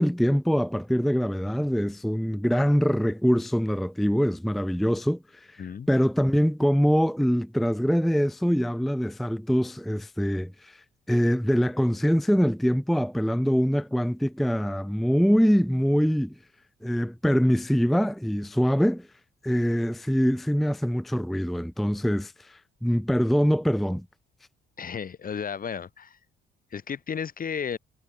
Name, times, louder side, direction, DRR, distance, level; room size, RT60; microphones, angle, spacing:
voice 1, 0.0-5.6 5.9-16.4 16.8-19.1 19.4-24.1, equal, ahead, 0.5 m, -24 dB
voice 2, 24.8-26.2 26.7-27.8, left 7 dB, 45° left, 2.3 m, -33 dB
cardioid pair, 90°, 20 cm